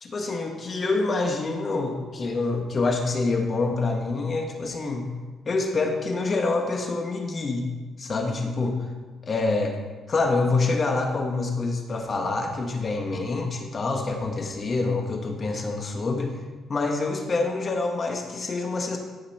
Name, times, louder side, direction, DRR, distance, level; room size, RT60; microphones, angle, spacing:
voice 1, 0.0-5.1 5.4-7.7 8.0-8.8 9.2-9.7 10.1-16.3 16.7-19.0, left 3 dB, 40° left, 3 dB, 1.7 m, -26 dB
15.0 x 5.8 x 4.4 m, 1.3 s
cardioid pair, 90°, 0 cm